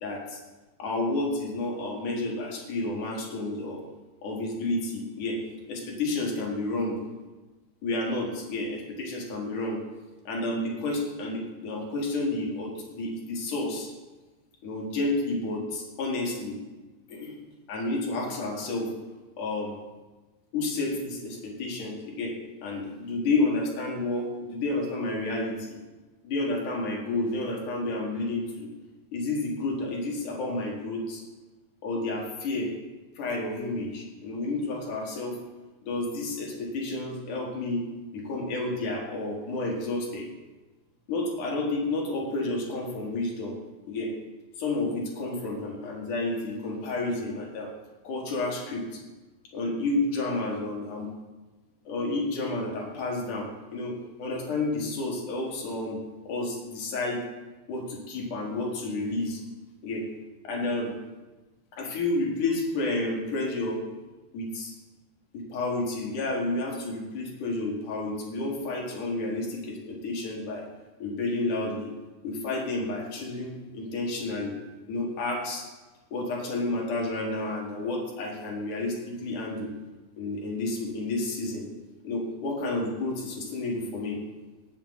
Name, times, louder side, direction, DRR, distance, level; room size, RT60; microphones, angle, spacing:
voice 1, 0.0-0.4 0.8-3.8 4.2-5.4 5.7-7.0 7.8-9.8 10.2-13.9 14.6-16.6 17.1-17.4 17.7-18.9 19.4-19.8 20.5-22.3 22.6-25.8 26.2-28.7 29.1-31.2 31.8-32.8 33.2-35.4 35.8-37.8 38.1-40.3 41.1-43.6 43.8-44.1 44.6-47.7 48.0-49.0 49.5-51.1 51.8-56.0 56.3-57.2 57.7-59.4 59.8-60.1 60.4-61.0 61.7-63.8 64.3-64.7 65.3-70.7 71.0-71.9 72.2-74.6 74.9-75.7 76.1-79.7 80.2-81.7 82.0-84.2, left 2 dB, 55° left, -1 dB, 2.8 m, -30 dB
18.5 x 7.5 x 4.1 m, 1.2 s
omnidirectional pair, 5.1 m